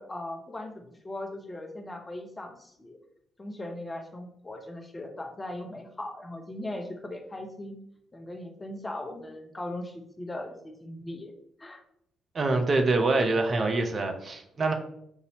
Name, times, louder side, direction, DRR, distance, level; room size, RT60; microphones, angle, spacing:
voice 1, 0.0-3.0 3.4-7.8 8.1-11.3 11.6-11.8, left 1 dB, 20° left, 3 dB, 0.8 m, -39 dB
voice 2, 12.3-14.7, right 2 dB, 40° right, 4 dB, 0.7 m, -25 dB
5.5 x 2.7 x 3.0 m, 0.73 s
figure-of-eight pair, 45°, 0 cm